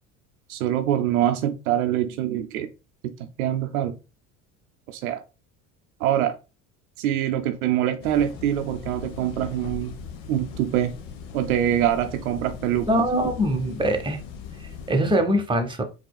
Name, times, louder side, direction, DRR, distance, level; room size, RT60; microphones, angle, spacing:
voice 1, 0.5-2.7 3.0-4.0 4.9-5.2 6.0-6.4 7.0-10.0 10.3-10.9 11.3-12.9, right 11 dB, 80° right, 0.5 m, -24 dB
sound 1, 8.0-15.0, left 6 dB, 65° left, 0.8 m, -39 dB
voice 2, 12.9-14.2 14.9-15.8, right 1 dB, 10° right, 0.8 m, -22 dB
4.2 x 2.9 x 2.2 m
hypercardioid pair, 75°, 42 cm